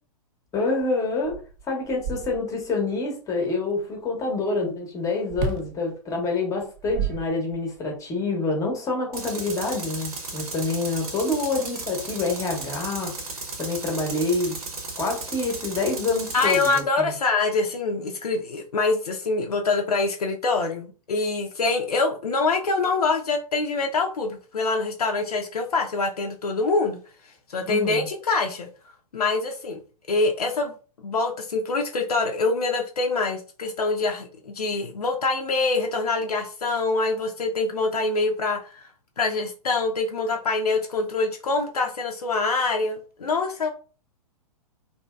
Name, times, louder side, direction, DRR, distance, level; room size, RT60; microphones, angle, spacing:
voice 1, 0.5-1.3 1.7-13.1 13.6-14.6 15.0-17.1 27.7-28.1, left 3 dB, 15° left, 1 dB, 0.8 m, -27 dB
sound 1, 0.8-0.9 1.2-2.7 5.3-5.8 6.6-7.8, right 6 dB, 35° right, 0.4 m, -31 dB
Tools, 9.1-16.8, right 3 dB, 70° right, 0.9 m, -35 dB
voice 2, 16.3-27.0 27.5-28.7 29.1-29.8 30.1-30.7 31.0-38.9 39.2-43.7, left 3 dB, 75° left, 2 dB, 0.5 m, -25 dB
2.7 x 2.7 x 2.3 m, 0.39 s
figure-of-eight pair, 110°, 20 cm